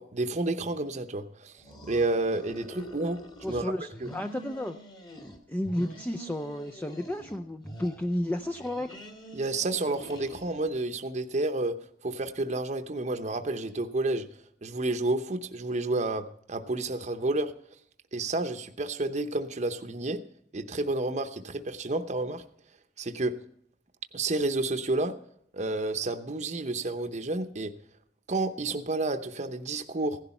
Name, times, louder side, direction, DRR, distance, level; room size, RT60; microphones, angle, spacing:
voice 1, 0.0-1.5 1.9-3.7 4.0-4.1 9.3-11.8 12.0-14.3 14.6-17.5 18.1-20.2 20.5-22.4 23.0-23.3 24.1-25.2 25.5-27.7 28.3-30.2, right 2 dB, 40° right, 7 dB, 0.8 m, -30 dB
sound 1, 1.6-3.6 3.9-5.4 5.6-7.4 7.6-10.8, right 1 dB, 25° left, 2.0 m, -46 dB
voice 2, 3.4-4.8 5.2-8.9, left 1 dB, 10° left, 6 dB, 0.4 m, -32 dB
16.0 x 11.0 x 4.3 m, 0.69 s
head